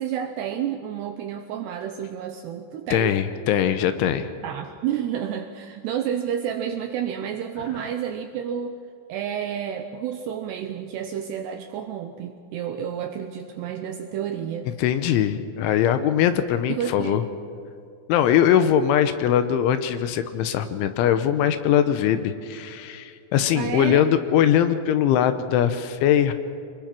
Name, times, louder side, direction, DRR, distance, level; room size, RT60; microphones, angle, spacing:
voice 1, 0.0-3.2 4.4-8.8 9.1-14.7 16.7-17.2 23.5-24.1, right 9 dB, 80° right, 6 dB, 2.5 m, -30 dB
voice 2, 2.9-4.3 14.8-17.2 18.1-26.3, left 10 dB, 80° left, 10 dB, 3.2 m, -21 dB
25.5 x 21.5 x 6.1 m, 2.6 s
omnidirectional pair, 5.8 m